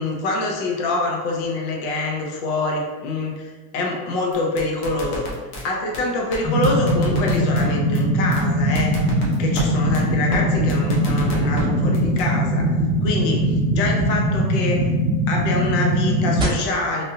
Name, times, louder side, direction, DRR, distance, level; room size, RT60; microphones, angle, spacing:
voice 1, 0.0-5.3 5.6-9.0 9.4-12.7 13.0-14.9 15.3-17.0, left 2 dB, 70° left, 0 dB, 0.9 m, -25 dB
sound 1, 4.3-5.6 5.9-6.0 6.3-6.4 6.6-7.6 7.9-8.0 8.3-8.4 8.7-9.6 9.9-10.0 10.3-10.4 10.7-11.6 11.9-12.2, equal, 45° left, 1.1 m, -31 dB
sound 2, 6.4-16.4, equal, 10° right, 0.7 m, -21 dB
3.5 x 2.6 x 2.8 m, 1.4 s
supercardioid pair, 125°, 49 cm